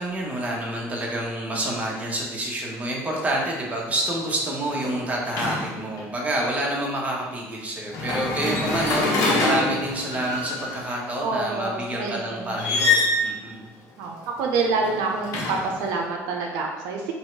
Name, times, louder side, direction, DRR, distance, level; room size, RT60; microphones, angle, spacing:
voice 1, 0.0-13.0 13.2-13.7, right 1 dB, 25° right, -2 dB, 1.1 m, -28 dB
sound 1, 3.3-3.6 3.9-6.0 7.9-10.9 12.5-13.3 14.5-15.9, left 2 dB, 60° left, 1.0 m, -26 dB
voice 2, 11.2-12.5 14.0-17.1, right 4 dB, 85° right, 0 dB, 0.6 m, -27 dB
3.1 x 2.7 x 4.5 m, 1.2 s
supercardioid pair, 90°, 6 cm